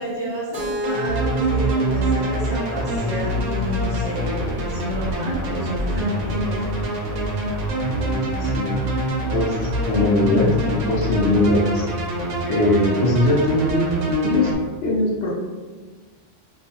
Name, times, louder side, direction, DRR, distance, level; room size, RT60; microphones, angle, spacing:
voice 1, 0.0-6.6, equal, 25° left, -12 dB, 0.6 m, -30 dB
Keyboard (musical), 0.5-4.4, left 1 dB, 45° right, 0.7 m, -33 dB
sound 1, 0.8-14.5, right 1 dB, 80° right, 0.9 m, -24 dB
voice 2, 7.9-8.8 9.3-11.9 12.5-14.0 14.2-14.5 14.8-15.3, left 1 dB, 65° left, -2 dB, 0.7 m, -21 dB
2.4 x 2.2 x 2.7 m, 1.4 s
omnidirectional pair, 1.3 m